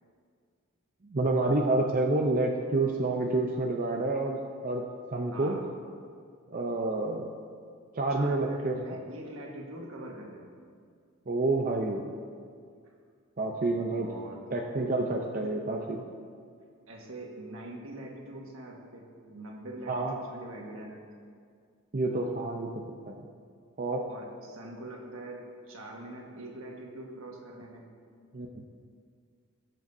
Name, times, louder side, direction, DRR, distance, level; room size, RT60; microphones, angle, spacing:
voice 1, 1.1-4.8 5.1-5.6 6.5-7.3 7.9-9.0 11.3-12.0 13.4-14.1 14.5-16.0 19.9-20.1 21.9-23.2 23.8-24.0 28.3-28.6, right 2 dB, 40° right, 0 dB, 0.6 m, -29 dB
voice 2, 5.3-5.7 8.1-10.6 14.0-14.5 16.9-21.0 24.1-27.8, right 1 dB, 75° right, 0 dB, 1.5 m, -43 dB
18.5 x 7.6 x 2.7 m, 2.2 s
head